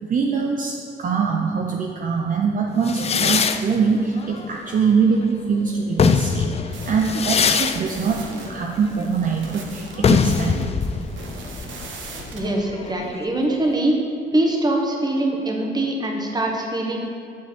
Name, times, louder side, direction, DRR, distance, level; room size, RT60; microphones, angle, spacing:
voice 1, 0.0-10.7, right 5 dB, 45° right, -1 dB, 0.6 m, -23 dB
sound 1, 2.8-5.3 5.8-13.3, left 6 dB, 30° left, 0.4 m, -23 dB
sound 2, 6.7-12.4, right 4 dB, 70° right, 1.1 m, -40 dB
voice 2, 12.1-13.9 14.3-17.0, right 1 dB, 20° right, 0 dB, 1.3 m, -23 dB
7.4 x 5.7 x 4.4 m, 2.6 s
cardioid pair, 90°, 20 cm